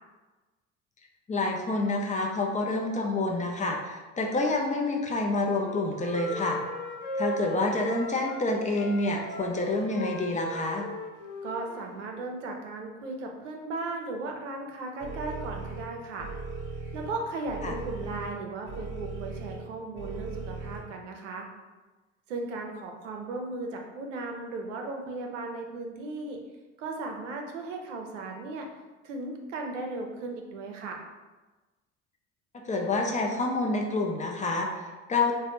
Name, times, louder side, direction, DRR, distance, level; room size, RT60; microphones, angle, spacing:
voice 1, 1.3-6.6 7.1-10.9 17.6-17.7 32.5-35.3, left 2 dB, 20° left, 1 dB, 0.4 m, -28 dB
Wind instrument woodwind instrument, 5.5-8.4 8.7-12.1, equal, 55° left, 0.8 m, -38 dB
sound 1, 6.1-8.8, left 3 dB, 20° right, 0.9 m, -46 dB
voice 2, 11.4-16.3 16.9-21.5 22.3-26.4 26.8-28.7 29.0-31.0, right 3 dB, 85° right, 2 dB, 0.5 m, -36 dB
sound 2, 15.0-20.8, right 3 dB, 50° right, 0.8 m, -38 dB
3.1 x 2.1 x 2.9 m, 1.2 s
hypercardioid pair, 65°, 36 cm